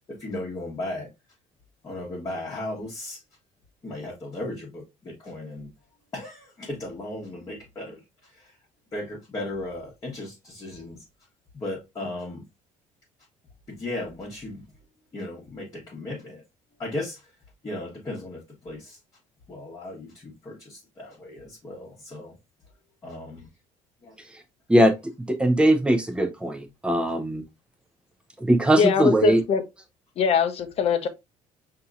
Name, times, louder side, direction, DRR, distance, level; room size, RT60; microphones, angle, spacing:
voice 1, 0.1-1.1 1.8-3.2 3.8-5.7 6.1-8.0 8.3-8.4 8.9-11.0 11.5-12.4 13.7-14.6 15.1-16.4 16.8-17.2 17.6-19.0 19.5-22.3 23.0-23.5 24.0-24.2, left 2 dB, 25° left, 1.2 m, -36 dB
voice 2, 25.3-27.4 28.4-29.4, right 1 dB, 5° right, 0.7 m, -20 dB
voice 3, 28.8-29.6 30.2-31.1, left 7 dB, 45° left, 0.7 m, -22 dB
5.3 x 2.9 x 2.4 m
cardioid pair, 125°, 14 cm